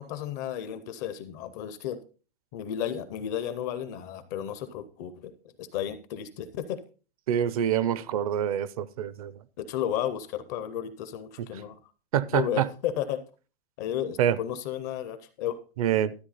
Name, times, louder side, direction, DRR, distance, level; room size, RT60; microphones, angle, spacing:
voice 1, 0.0-2.0 2.5-5.3 5.6-6.8 9.6-11.8 12.3-13.2 13.8-15.6, left 10 dB, 20° left, 0.4 m, -33 dB
voice 2, 7.3-9.4 12.1-12.7 14.2-14.4 15.8-16.1, right 10 dB, 40° right, 0.5 m, -26 dB
13.0 x 8.3 x 4.0 m
supercardioid pair, 170°, 30 cm